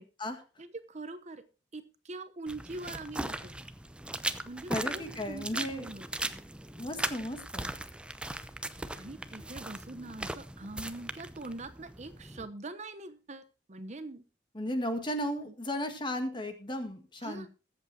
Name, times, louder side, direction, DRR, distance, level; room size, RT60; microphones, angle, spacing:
voice 1, 0.6-1.4 1.7-3.5 4.4-6.1 9.0-13.4 13.7-14.2 15.5-15.6 17.2-17.5, right 2 dB, 40° right, 11 dB, 0.9 m, -43 dB
sound 1, 2.5-12.5, right 1 dB, 5° right, 0.7 m, -39 dB
voice 2, 4.7-5.9 6.8-7.7 14.5-17.5, left 1 dB, 25° left, 7 dB, 1.9 m, -35 dB
21.0 x 8.2 x 2.9 m, 0.34 s
head